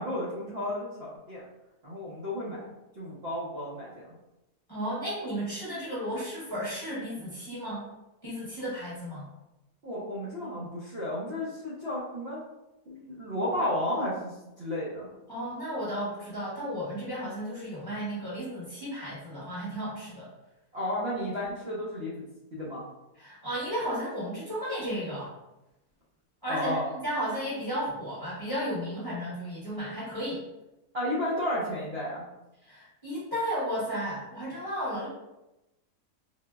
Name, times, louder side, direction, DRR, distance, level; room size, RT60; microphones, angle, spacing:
voice 1, 0.0-1.4 1.8-2.7 3.0-4.1 9.8-12.4 12.9-14.3 14.6-15.1 20.7-22.2 22.5-22.9 26.5-26.9 30.9-32.3, left 1 dB, 55° right, -8 dB, 0.7 m, -32 dB
voice 2, 4.7-7.8 8.2-9.3 15.3-20.3 23.2-25.3 26.4-30.4 32.6-35.1, equal, 15° left, -9 dB, 0.9 m, -34 dB
3.8 x 2.0 x 2.3 m, 0.95 s
omnidirectional pair, 1.7 m